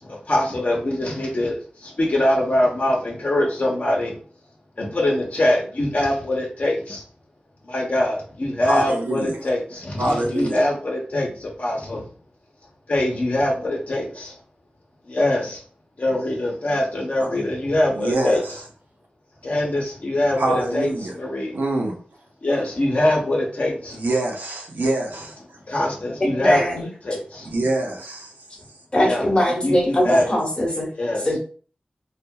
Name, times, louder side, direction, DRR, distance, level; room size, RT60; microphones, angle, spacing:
voice 1, 0.0-4.2 4.8-7.0 7.6-12.1 12.9-14.3 15.1-15.6 16.0-18.4 19.4-21.5 22.4-24.0 25.7-26.6 27.0-27.5 28.9-29.2 29.6-30.2 31.0-31.2, left 1 dB, 50° left, 0.9 m, -23 dB
voice 2, 8.6-9.4 10.0-10.6 17.2-17.5 17.9-18.6 20.3-21.1 21.5-22.0 23.9-25.3 27.4-28.3 30.0-30.3, right 2 dB, 75° right, 0.7 m, -25 dB
voice 3, 26.2-26.9 28.9-30.9 31.1-31.4, left 1 dB, 35° left, 1.1 m, -21 dB
2.7 x 2.4 x 2.3 m
wide cardioid pair, 85°, 3 cm